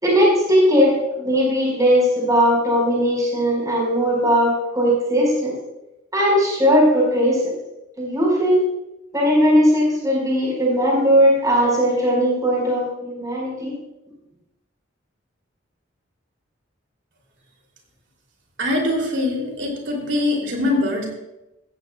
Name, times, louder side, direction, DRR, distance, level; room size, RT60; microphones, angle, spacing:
voice 1, 0.0-5.5 6.1-7.4 8.0-8.6 9.1-13.7, equal, 20° right, -5 dB, 5.0 m, -18 dB
voice 2, 18.6-21.1, left 1 dB, 60° right, 1 dB, 3.0 m, -23 dB
15.5 x 15.0 x 2.3 m, 0.94 s
head